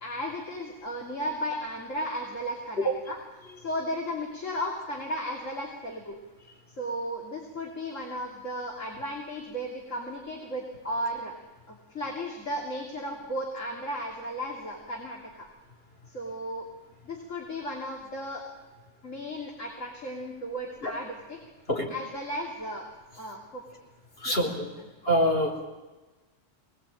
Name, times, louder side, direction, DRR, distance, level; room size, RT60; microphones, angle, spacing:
voice 1, 0.0-3.2 3.6-6.1 6.8-11.4 11.7-15.5 16.1-16.6 17.0-18.4 19.0-21.4 21.9-23.6 24.3-24.4, equal, 75° left, 0 dB, 3.3 m, -35 dB
voice 2, 24.2-24.7 25.0-25.7, equal, 50° left, 1 dB, 4.4 m, -25 dB
24.5 x 19.5 x 8.9 m, 1.2 s
omnidirectional pair, 1.3 m